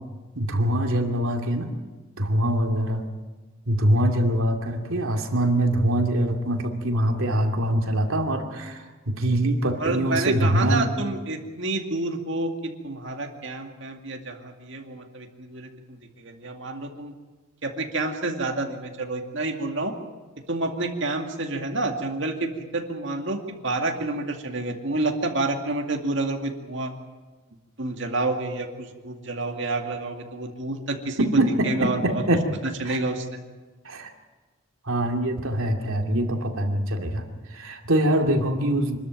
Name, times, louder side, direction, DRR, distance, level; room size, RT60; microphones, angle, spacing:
voice 1, 0.3-1.7 2.2-3.1 3.7-10.9 31.2-32.5 32.8-33.0 33.8-34.1 34.9-39.0, right 1 dB, 75° right, 3 dB, 2.5 m, -23 dB
voice 2, 9.8-17.1 17.6-19.9 20.5-26.9 27.8-32.2 32.8-33.4, right 2 dB, 60° right, 3 dB, 2.3 m, -29 dB
25.5 x 13.0 x 9.2 m, 1.3 s
head